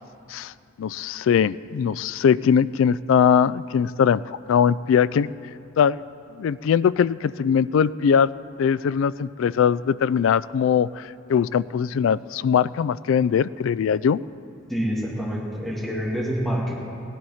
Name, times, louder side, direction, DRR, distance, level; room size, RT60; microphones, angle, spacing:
voice 1, 0.8-4.2 4.5-5.3 5.8-6.0 6.4-8.3 8.6-14.2, left 7 dB, 80° left, 18 dB, 0.3 m, -21 dB
voice 2, 14.7-16.8, equal, ahead, -5 dB, 2.1 m, -27 dB
16.5 x 10.5 x 5.7 m, 2.6 s
head